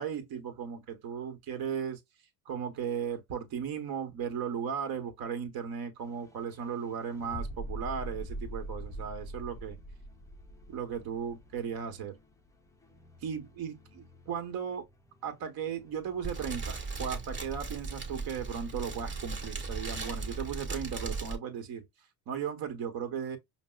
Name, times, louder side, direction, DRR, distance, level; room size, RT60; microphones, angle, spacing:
voice 1, 0.0-2.0 2.4-9.8 10.7-12.1 13.2-14.9 15.2-21.9 22.3-23.4, right 7 dB, 55° right, 1.2 m, -36 dB
sound 1, 6.0-20.3, equal, 5° left, 0.5 m, -46 dB
Fire, 16.2-21.4, right 4 dB, 25° right, 1.3 m, -37 dB
5.1 x 2.1 x 2.3 m
supercardioid pair, 100°, 44 cm